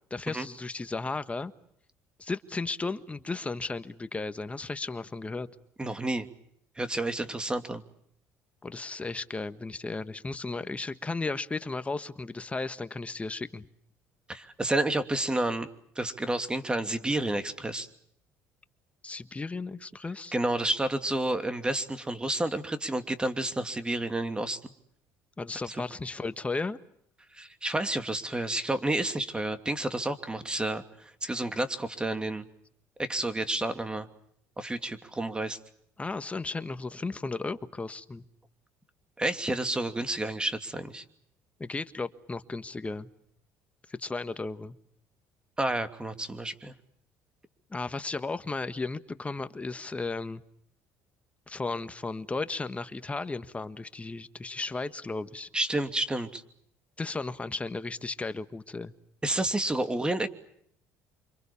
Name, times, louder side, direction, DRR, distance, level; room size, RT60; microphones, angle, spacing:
voice 1, 0.1-1.5 2.2-5.5 8.6-13.7 19.0-20.3 25.4-26.8 36.0-38.2 41.6-43.1 43.9-44.7 47.7-50.4 51.5-55.5 57.0-58.9, left 3 dB, 20° left, 12 dB, 1.5 m, -35 dB
voice 2, 5.8-6.3 6.8-7.8 14.3-15.7 16.0-17.9 20.3-24.6 25.7-25.8 27.3-30.8 31.2-32.5 33.0-34.1 34.6-35.6 39.2-41.0 45.6-46.7 55.5-56.4 59.2-60.3, right 1 dB, 15° right, 9 dB, 2.8 m, -30 dB
29.0 x 26.0 x 7.1 m, 0.69 s
supercardioid pair, 90°, 6 cm